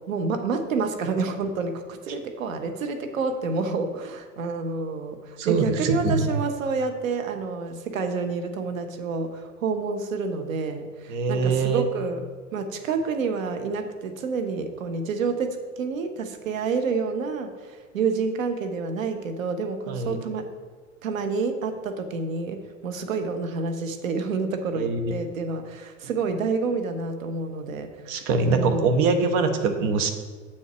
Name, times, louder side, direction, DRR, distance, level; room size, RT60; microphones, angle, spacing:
voice 1, 0.1-12.2 12.5-20.5 21.0-28.2 28.5-28.9, right 4 dB, 85° right, 7 dB, 0.9 m, -28 dB
voice 2, 5.4-6.3 11.1-11.8 19.9-20.2 24.7-25.0 28.0-30.1, right 4 dB, 60° right, 6 dB, 1.2 m, -23 dB
7.9 x 4.3 x 6.0 m, 1.5 s
hypercardioid pair, 90°, 39 cm